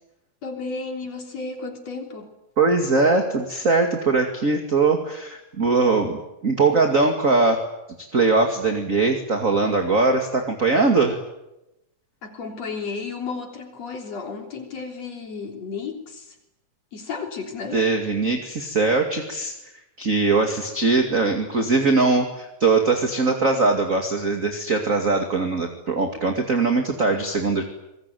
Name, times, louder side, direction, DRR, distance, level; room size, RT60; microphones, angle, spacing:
voice 1, 0.4-2.3 12.2-16.4 16.9-17.8, left 4 dB, 50° left, 3 dB, 4.6 m, -33 dB
voice 2, 2.6-7.6 8.1-11.2 17.7-19.5 20.0-27.6, right 3 dB, 25° right, 4 dB, 2.3 m, -21 dB
27.0 x 21.5 x 9.3 m, 0.89 s
omnidirectional pair, 3.7 m